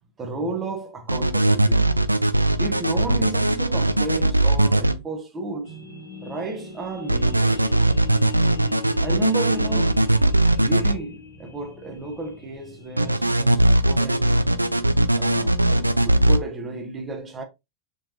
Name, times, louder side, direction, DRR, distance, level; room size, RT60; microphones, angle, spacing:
voice 1, 0.2-1.9 2.6-5.7 6.2-7.7 9.0-10.1 10.6-14.5 15.2-17.4, right 3 dB, 20° right, 1.1 m, -32 dB
sound 1, 1.1-4.9 7.1-10.9 13.0-16.4, right 1 dB, 85° right, 0.4 m, -19 dB
sound 2, 5.6-13.1, left 5 dB, 60° left, 1.6 m, -39 dB
4.5 x 3.9 x 2.7 m
figure-of-eight pair, 90°, 0 cm